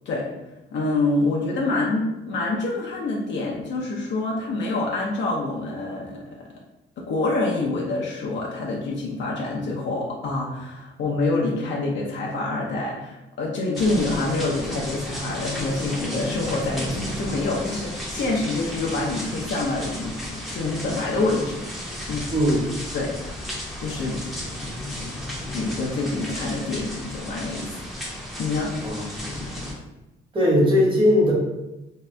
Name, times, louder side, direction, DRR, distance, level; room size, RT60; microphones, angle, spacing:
voice 1, 0.7-6.2 7.0-22.3 22.9-23.4 23.8-24.2 25.5-27.8 28.4-28.8, left 2 dB, 65° left, -3 dB, 0.6 m, -26 dB
sound 1, 13.7-29.7, left 1 dB, ahead, 0.7 m, -33 dB
voice 2, 22.3-22.6 28.8-29.4 30.3-31.3, left 1 dB, 25° right, -4 dB, 1.1 m, -19 dB
2.7 x 2.3 x 3.2 m, 0.97 s
cardioid pair, 90°, 20 cm